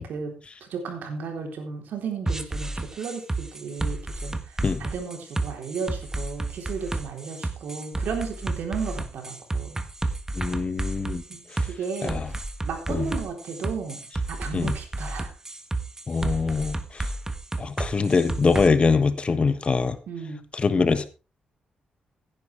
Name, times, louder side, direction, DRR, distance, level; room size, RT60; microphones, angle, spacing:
voice 1, 0.0-9.8 11.3-12.2 12.6-14.0 14.3-15.3 20.1-20.4, right 5 dB, 80° right, 3 dB, 3.8 m, -34 dB
sound 1, 2.3-18.7, right 2 dB, 15° right, 1.4 m, -31 dB
voice 2, 10.4-11.2 12.0-12.3 12.9-13.1 14.5-14.7 16.1-16.8 17.6-20.0 20.6-21.1, left 4 dB, 40° left, 12 dB, 1.4 m, -23 dB
15.5 x 10.5 x 3.4 m, 0.32 s
cardioid pair, 80°, 3 cm